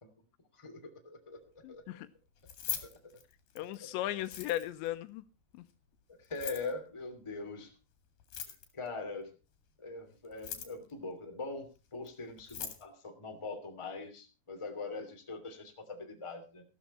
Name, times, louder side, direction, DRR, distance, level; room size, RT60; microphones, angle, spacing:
voice 1, 0.5-1.4 1.7-1.8 2.8-3.1 3.6-4.1 6.3-7.7 8.7-9.3 9.8-16.6, left 3 dB, 10° left, 1.9 m, -42 dB
voice 2, 1.6-2.1 3.6-5.2, left 14 dB, 90° left, 3.2 m, -36 dB
Keys jangling, 2.4-3.8 4.2-4.9 6.2-6.7 8.2-8.9 10.2-10.9 12.1-12.2 12.4-12.8, left 10 dB, 60° left, 3.6 m, -41 dB
15.0 x 13.0 x 4.3 m
omnidirectional pair, 5.0 m